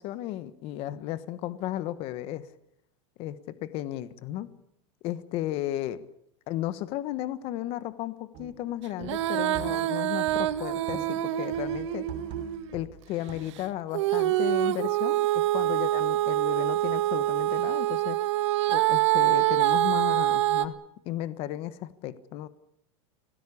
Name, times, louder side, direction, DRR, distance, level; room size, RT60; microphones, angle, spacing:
voice 1, 0.0-2.5 3.2-4.5 5.0-6.0 6.5-12.0 12.7-18.2 18.7-20.8 21.0-22.5, left 13 dB, 40° left, 14 dB, 1.2 m, -34 dB
sound 1, 8.3-8.6 9.0-10.0 10.3-11.3 11.5-13.7, right 7 dB, 40° right, 6.9 m, -44 dB
Female singing, 9.0-12.7 13.9-20.7, right 15 dB, 75° right, 1.9 m, -25 dB
26.0 x 18.5 x 8.5 m, 0.78 s
supercardioid pair, 165°, 15 cm